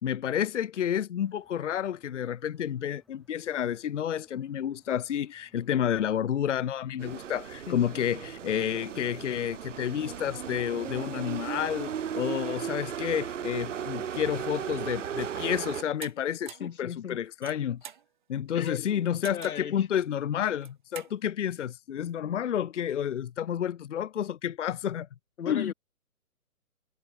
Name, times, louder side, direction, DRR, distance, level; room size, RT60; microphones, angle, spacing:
voice 1, 0.0-17.8 18.3-25.1 25.5-25.7, left 9 dB, 55° left, 0.9 m, -30 dB
sound 1, 1.2-15.7, left 1 dB, ahead, 0.5 m, -69 dB
sound 2, 7.0-15.8, right 8 dB, 55° right, 1.6 m, -36 dB
sound 3, 16.0-16.1 16.5-16.7 17.3-18.1 19.2-19.7 20.5-21.1, right 9 dB, 35° right, 0.7 m, -44 dB
voice 2, 16.6-17.2 18.5-19.9 25.4-25.7, left 8 dB, 75° left, 1.1 m, -37 dB
hypercardioid pair, 155°, 44 cm